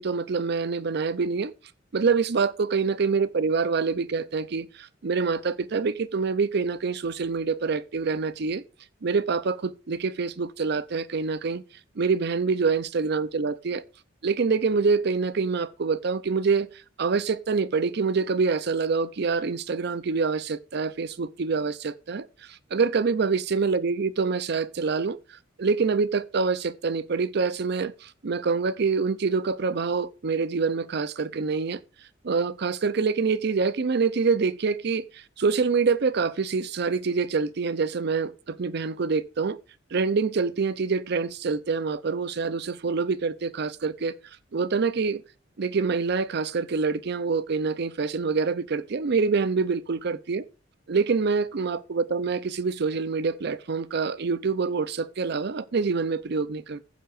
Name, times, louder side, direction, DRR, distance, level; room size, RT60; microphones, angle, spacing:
voice 1, 0.0-1.5 1.9-8.6 9.0-11.6 12.0-13.8 14.2-16.7 17.0-25.2 25.6-31.8 32.2-39.6 39.9-44.2 44.5-45.2 45.6-50.4 50.9-56.8, right 4 dB, 60° right, 0.5 m, -26 dB
15.0 x 7.5 x 2.5 m
head